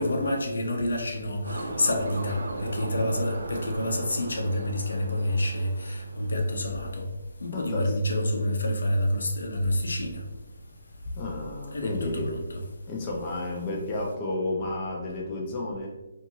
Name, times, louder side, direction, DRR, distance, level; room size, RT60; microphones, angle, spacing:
voice 1, 0.0-7.1 7.4-10.2 11.7-12.6, left 1 dB, 85° left, 2 dB, 0.6 m, -28 dB
sound 1, 1.4-6.8, right 2 dB, 75° right, 0.5 m, -37 dB
voice 2, 7.5-7.9 11.2-12.4 12.9-15.9, left 2 dB, 15° left, -2 dB, 0.3 m, -32 dB
2.6 x 2.4 x 2.8 m, 1.0 s
hypercardioid pair, 180°, 0 cm